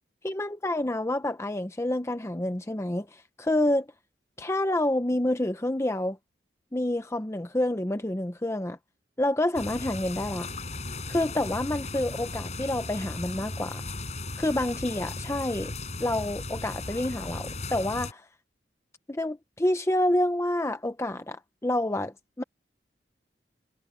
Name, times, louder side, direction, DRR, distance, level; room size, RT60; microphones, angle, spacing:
voice 1, 0.2-3.9 4.4-6.2 6.7-8.8 9.2-10.5 11.1-13.8 14.4-15.7 16.0-18.2 19.1-22.4, left 1 dB, 15° left, 0.7 m, -28 dB
sound 1, 9.5-18.1, left 2 dB, 40° left, 6.5 m, -36 dB
head